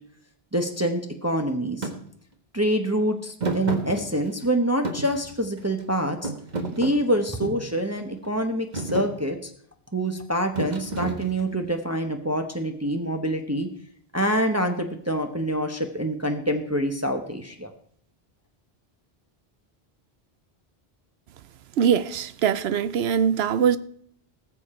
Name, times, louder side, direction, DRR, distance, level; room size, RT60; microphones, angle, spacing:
voice 1, 0.5-1.9 2.5-6.3 6.7-9.5 9.9-13.7 14.1-17.7, right 1 dB, 15° right, 1.0 m, -26 dB
Thump thud, 1.8-2.0 3.4-4.5 4.8-5.8 6.2-7.7 8.3-8.5 8.7-9.1 10.6-11.6, right 2 dB, 45° right, 1.5 m, -31 dB
voice 2, 21.8-23.8, right 8 dB, 80° right, 0.9 m, -22 dB
19.0 x 7.2 x 4.3 m
omnidirectional pair, 1.1 m